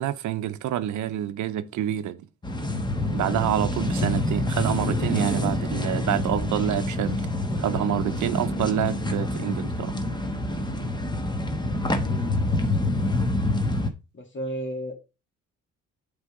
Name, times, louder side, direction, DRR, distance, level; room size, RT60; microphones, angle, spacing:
voice 1, 0.0-2.2 3.1-7.2 7.6-9.9, right 11 dB, 75° right, 0.7 m, -27 dB
sound 1, 2.4-13.9, left 1 dB, 15° left, 1.1 m, -27 dB
voice 2, 12.0-12.3 14.1-14.9, right 1 dB, 40° left, 1.9 m, -33 dB
7.9 x 3.5 x 4.7 m
cardioid pair, 90°, 30 cm